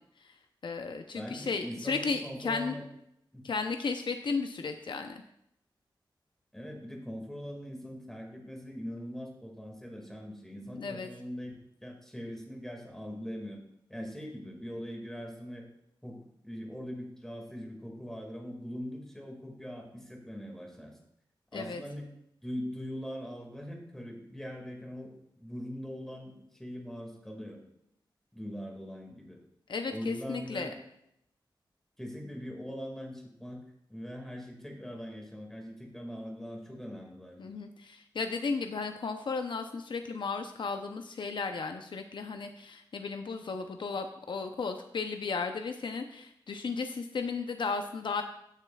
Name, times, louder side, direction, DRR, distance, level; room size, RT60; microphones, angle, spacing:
voice 1, 0.6-2.8 3.4-5.2 10.7-11.1 21.5-21.8 29.7-30.7 37.4-48.2, left 4 dB, 70° left, 6 dB, 0.6 m, -34 dB
voice 2, 1.1-2.9 3.3-3.4 6.5-11.5 11.8-13.6 13.9-15.7 16.0-21.0 21.5-22.1 22.4-25.1 25.4-27.6 28.3-29.4 29.9-30.8 32.0-33.6 33.9-37.5, equal, 5° left, 1 dB, 1.9 m, -41 dB
15.5 x 6.6 x 2.3 m, 0.77 s
wide cardioid pair, 120°, 8 cm